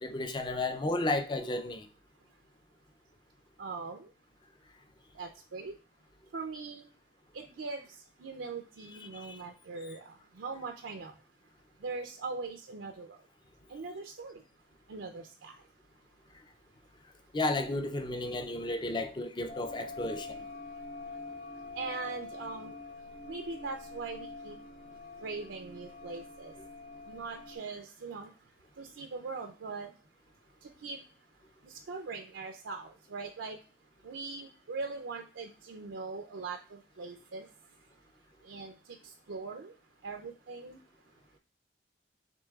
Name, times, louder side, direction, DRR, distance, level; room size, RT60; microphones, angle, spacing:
voice 1, 0.0-1.9 9.1-9.4 17.3-20.4, left 2 dB, 25° left, 0.4 m, -33 dB
voice 2, 3.6-4.1 5.1-5.8 6.3-6.9 7.3-13.3 13.6-14.4 14.9-17.3 20.6-41.4, right 4 dB, 80° right, 0.5 m, -42 dB
sound 1, 19.5-27.6, left 3 dB, 60° left, 2.5 m, -45 dB
6.7 x 3.1 x 2.3 m
head